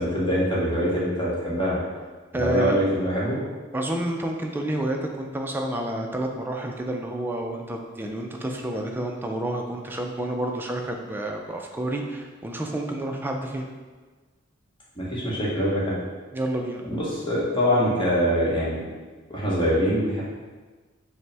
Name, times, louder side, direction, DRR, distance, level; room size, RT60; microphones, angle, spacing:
voice 1, 0.0-1.8 2.4-3.4 15.0-16.0 16.9-18.8 19.3-20.2, equal, 25° left, -7 dB, 1.1 m, -24 dB
voice 2, 2.3-2.8 3.7-13.7 16.3-16.8, right 1 dB, 10° right, 2 dB, 0.3 m, -29 dB
5.1 x 2.1 x 3.3 m, 1.4 s
head